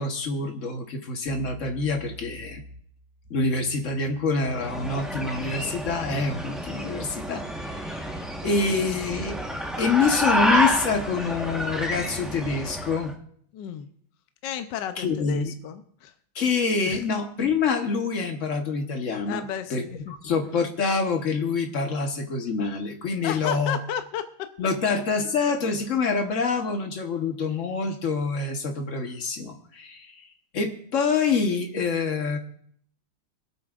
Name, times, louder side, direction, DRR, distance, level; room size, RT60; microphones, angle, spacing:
voice 1, 0.0-2.6 3.3-8.1 8.4-9.4 9.8-13.2 15.0-15.5 16.3-19.4 19.7-19.8 20.2-23.8 24.6-30.1 30.5-32.4, left 4 dB, 45° left, 4 dB, 1.3 m, -26 dB
sound 1, 1.2-8.8, right 1 dB, 35° right, 3.8 m, -48 dB
sound 2, 4.5-13.1, equal, ahead, 0.7 m, -29 dB
voice 2, 13.5-13.9 14.4-16.2 16.9-17.0 19.3-20.1 23.2-24.5, left 9 dB, 70° left, 9 dB, 1.3 m, -33 dB
25.5 x 8.7 x 2.4 m, 0.64 s
omnidirectional pair, 2.2 m